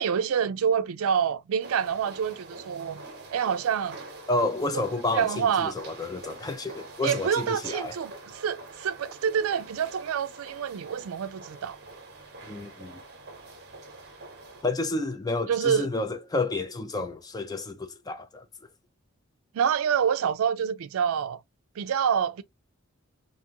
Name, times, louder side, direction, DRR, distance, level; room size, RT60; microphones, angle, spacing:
voice 1, 0.0-3.0 3.3-4.0 5.1-5.7 7.0-11.8 15.5-15.9 19.5-21.4 21.8-22.4, right 7 dB, 75° right, 0.4 m, -27 dB
sound 1, 1.6-14.6, right 3 dB, 50° right, 0.9 m, -45 dB
voice 2, 4.3-5.3 5.6-7.9 12.5-13.0 14.6-18.4, left 2 dB, 20° left, 0.4 m, -30 dB
2.5 x 2.4 x 2.7 m
head